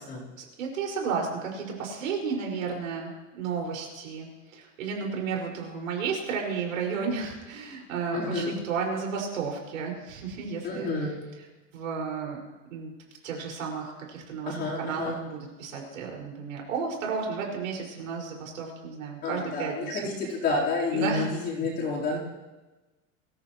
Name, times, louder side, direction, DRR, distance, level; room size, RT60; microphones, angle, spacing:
voice 1, 0.4-11.1 11.7-12.4 12.7-12.9 13.2-20.0 20.9-21.3, right 5 dB, 85° right, 0 dB, 5.7 m, -33 dB
voice 2, 8.1-8.5 10.6-11.2 14.5-15.2 19.2-22.2, left 3 dB, 25° left, -5 dB, 4.1 m, -29 dB
24.0 x 14.5 x 3.1 m, 1.2 s
supercardioid pair, 165°, 39 cm